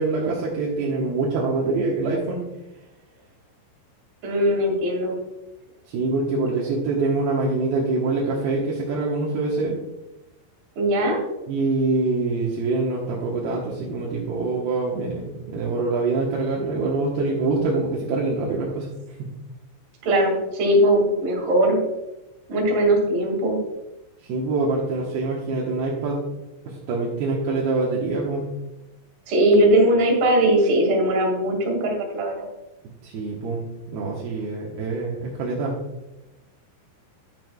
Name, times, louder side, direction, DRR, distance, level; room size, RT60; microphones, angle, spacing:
voice 1, 0.0-2.4 5.9-9.7 11.5-18.9 19.2-19.3 24.3-26.2 26.6-28.5 33.0-33.6 33.9-35.7, right 3 dB, 70° right, -4 dB, 2.5 m, -25 dB
voice 2, 4.2-5.1 10.8-11.2 20.0-21.8 22.5-23.6 29.3-32.5, right 1 dB, 50° right, 0 dB, 3.3 m, -20 dB
10.5 x 10.0 x 2.3 m, 0.97 s
omnidirectional pair, 5.8 m